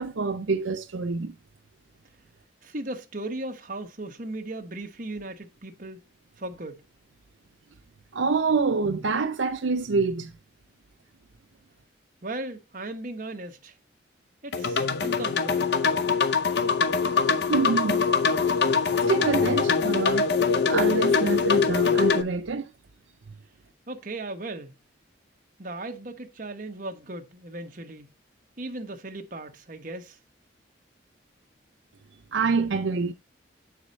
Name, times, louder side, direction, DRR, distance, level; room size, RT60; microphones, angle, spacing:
voice 1, 0.0-1.3 8.1-10.3 17.2-18.1 18.7-20.3 20.7-22.7 32.3-33.1, right 4 dB, 80° right, 0.6 m, -26 dB
voice 2, 2.6-6.0 6.4-6.8 12.2-13.7 14.4-15.7 23.9-24.7 25.6-28.1 28.6-30.2, right 2 dB, 45° right, 1.0 m, -37 dB
sound 1, 14.5-22.2, left 5 dB, 60° left, 0.6 m, -23 dB
7.5 x 4.8 x 4.0 m
head